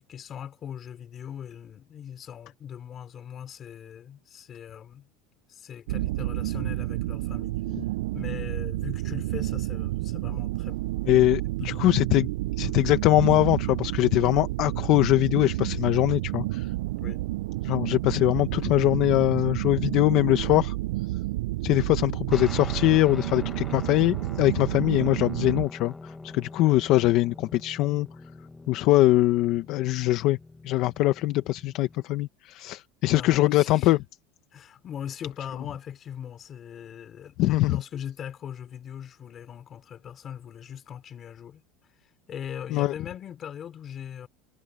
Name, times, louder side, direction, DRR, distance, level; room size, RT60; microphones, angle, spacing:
voice 1, 0.0-5.1 5.5-7.5 8.1-10.8 11.6-11.8 17.0-17.2 33.1-33.9 34.5-41.6 42.3-44.3, left 9 dB, 25° left, 4.4 m, -40 dB
sound 1, 5.9-25.7, right 18 dB, 80° right, 0.3 m, -30 dB
voice 2, 11.1-12.3 12.6-16.7 17.6-20.7 21.6-28.1 28.7-30.4 30.6-34.0 37.4-37.8 42.7-42.9, left 17 dB, 45° left, 0.9 m, -22 dB
Guitar, 22.3-32.0, left 3 dB, 10° left, 1.2 m, -44 dB
supercardioid pair, 160°, 0 cm